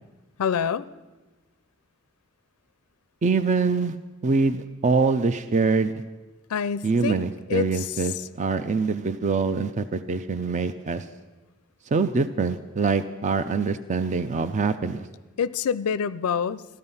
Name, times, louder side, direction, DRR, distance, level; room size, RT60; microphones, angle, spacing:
voice 1, 0.4-0.9 6.5-7.2 7.5-8.3 15.4-16.7, left 7 dB, 90° left, 17 dB, 0.4 m, -26 dB
voice 2, 3.2-4.0 4.2-5.9 6.8-11.1 11.9-15.1, right 4 dB, 35° right, 10 dB, 0.4 m, -24 dB
14.0 x 13.5 x 5.5 m, 1.2 s
head